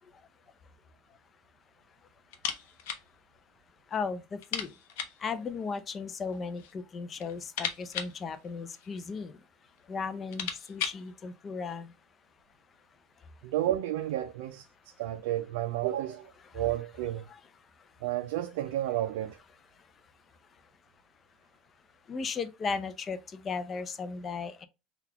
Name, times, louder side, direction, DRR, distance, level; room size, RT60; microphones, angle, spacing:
sound 1, 2.3-3.1 3.3-3.4 3.8-3.9 4.4-5.3 6.2-6.8 7.1-9.1 9.8-9.9 10.1-11.1, left 8 dB, 85° left, 0.7 m, -37 dB
voice 1, 3.9-4.7 5.2-9.3 9.9-11.9 17.3-17.4 22.1-24.7, left 5 dB, 25° left, 0.4 m, -36 dB
voice 2, 13.4-14.7 15.0-17.3 18.0-19.4, right 13 dB, 85° right, 0.3 m, -31 dB
3.9 x 2.3 x 2.8 m
supercardioid pair, 140°, 0 cm